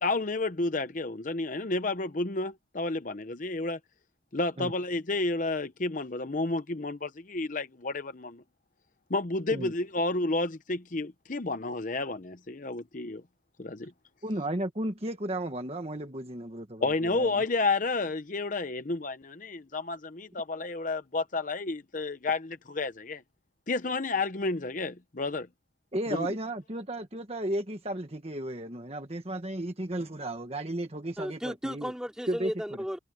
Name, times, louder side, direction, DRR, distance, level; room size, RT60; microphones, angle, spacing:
voice 1, 0.0-3.8 4.3-8.4 9.1-13.2 13.6-13.9 16.8-23.2 23.7-25.5 26.1-26.3, left 3 dB, 45° left, 0.8 m, -31 dB
voice 2, 14.2-17.3 25.9-31.9 32.3-32.5, right 1 dB, 30° right, 1.5 m, -34 dB
voice 3, 31.2-33.0, equal, 5° right, 4.7 m, -34 dB
head